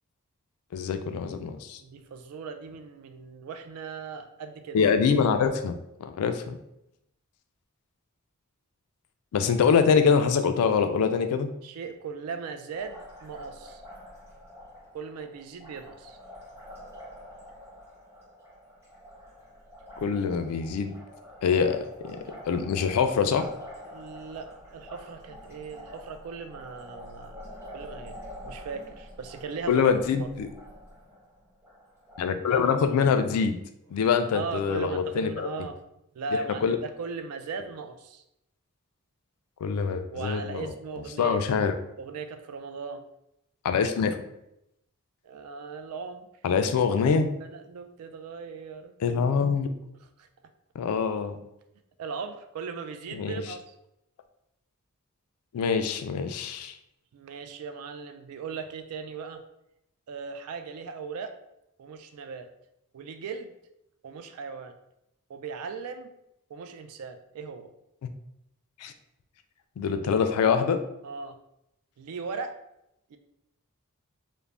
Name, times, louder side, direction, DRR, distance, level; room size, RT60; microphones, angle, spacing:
voice 1, 0.7-1.8 4.7-6.6 9.3-11.5 20.0-20.9 21.4-22.2 22.5-23.5 29.7-30.5 32.2-33.6 33.9-35.5 36.6-36.8 39.6-40.7 41.2-41.7 43.6-44.2 46.4-47.3 49.0-49.7 50.8-51.4 53.1-53.4 55.5-56.8 68.0-68.1 68.8-68.9 69.8-70.8, left 6 dB, 80° left, 9 dB, 0.3 m, -24 dB
voice 2, 1.8-4.8 11.6-13.8 14.9-16.2 23.9-28.2 28.5-29.8 30.2-30.3 32.5-32.6 33.9-34.1 34.3-35.8 36.1-38.2 40.1-41.4 42.0-43.0 45.2-46.3 47.4-48.9 50.2-50.3 52.0-53.7 57.1-59.4 60.1-61.3 61.8-62.5 62.9-63.5 64.0-64.7 65.3-66.1 66.5-67.7 71.0-71.4 72.0-72.6 73.1-73.2, right 5 dB, 80° right, 8 dB, 0.3 m, -38 dB
Liquid, 12.7-32.3, equal, 10° right, 0.7 m, -47 dB
2.4 x 2.0 x 3.2 m, 0.82 s
head